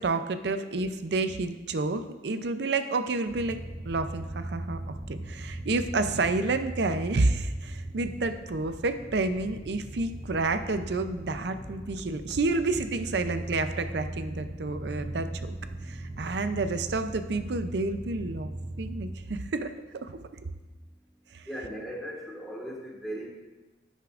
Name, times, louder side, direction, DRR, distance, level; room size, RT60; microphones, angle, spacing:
voice 1, 0.0-3.6 3.8-15.6 15.8-18.5 18.8-19.7 20.0-20.1 21.3-21.5, right 3 dB, 65° right, 10 dB, 0.5 m, -29 dB
sound 1, 3.3-19.2, right 1 dB, 25° right, 2.5 m, -39 dB
voice 2, 21.5-23.3, equal, ahead, -3 dB, 1.6 m, -37 dB
11.0 x 9.1 x 2.5 m, 1.2 s
head